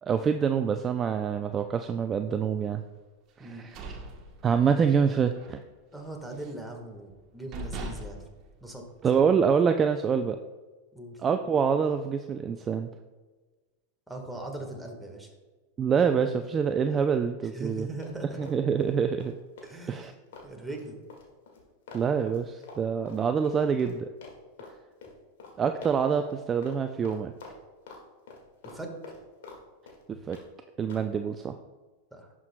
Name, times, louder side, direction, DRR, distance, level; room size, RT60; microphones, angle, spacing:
voice 1, 0.0-2.8 3.4-3.8 4.4-5.6 9.0-10.4 11.2-12.9 15.8-17.9 18.4-19.4 19.9-20.1 21.9-24.1 25.6-27.3 30.1-30.4 30.8-31.6, right 6 dB, 25° right, 8 dB, 0.4 m, -26 dB
sound 1, 3.4-5.0 5.3-5.6 5.9-6.7 7.1-7.2 7.5-9.3, right 2 dB, 45° right, 1.1 m, -41 dB
voice 2, 5.9-8.3 8.6-8.8 10.9-11.2 14.1-15.3 17.5-18.5 19.6-20.1 20.4-21.0 28.6-29.0 32.1-32.3, right 2 dB, ahead, 1 dB, 1.4 m, -40 dB
Run, 18.0-18.9 19.2-24.0 24.2-24.7 25.0-25.1 25.4-25.5 25.8-26.4 26.6-26.8 27.0-28.0 28.3-29.6 29.9-30.5 30.9-31.1, left 4 dB, 75° left, 1.8 m, -47 dB
11.0 x 6.1 x 2.2 m, 1.3 s
hypercardioid pair, 110°, 0 cm